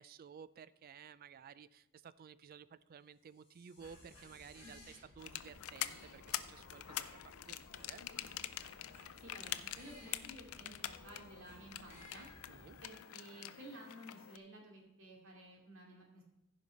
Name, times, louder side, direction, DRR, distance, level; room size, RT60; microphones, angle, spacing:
voice 1, 0.0-7.0 7.5-8.0 12.5-12.8, right 7 dB, 45° right, 17 dB, 0.3 m, -55 dB
sound 1, 3.2-5.0, left 3 dB, 30° left, 2.3 m, -64 dB
sound 2, 3.8-12.8, equal, 10° right, 4.0 m, -59 dB
sound 3, 5.2-14.4, left 12 dB, 75° left, 0.5 m, -45 dB
voice 2, 9.2-12.5 12.8-16.2, right 1 dB, 65° right, -1 dB, 2.6 m, -54 dB
15.5 x 5.2 x 4.1 m, 0.88 s
head